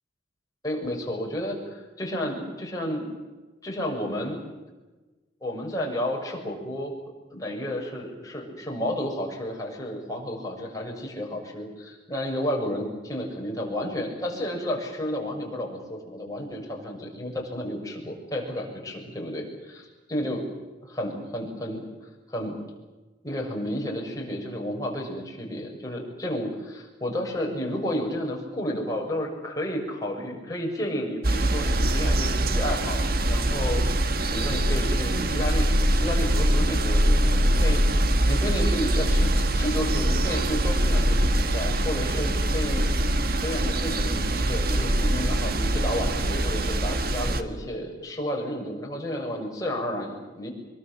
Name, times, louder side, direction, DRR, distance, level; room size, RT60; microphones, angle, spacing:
voice 1, 0.6-3.1 3.6-4.4 5.4-6.9 7.3-19.8 20.1-20.4 20.9-21.9 22.3-22.6 23.2-37.8 38.3-42.8 43.4-50.5, equal, 20° left, -1 dB, 6.9 m, -31 dB
sound 1, 31.2-47.4, right 1 dB, 55° right, 1.7 m, -23 dB
24.5 x 23.5 x 7.6 m, 1.2 s
head